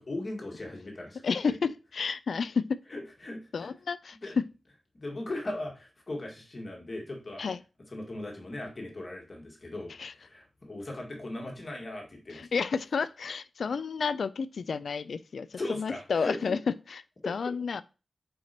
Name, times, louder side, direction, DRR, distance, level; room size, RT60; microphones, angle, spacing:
voice 1, 0.0-1.2 2.9-3.7 4.2-4.4 4.9-7.4 7.9-12.5 15.6-16.4 17.2-17.3, left 2 dB, 35° left, 1.9 m, -38 dB
voice 2, 1.2-2.8 3.5-4.4 7.4-7.6 10.0-10.1 12.3-16.6 16.9-17.8, left 5 dB, 65° left, 0.4 m, -31 dB
8.5 x 4.8 x 2.9 m
wide cardioid pair, 160°, 0 cm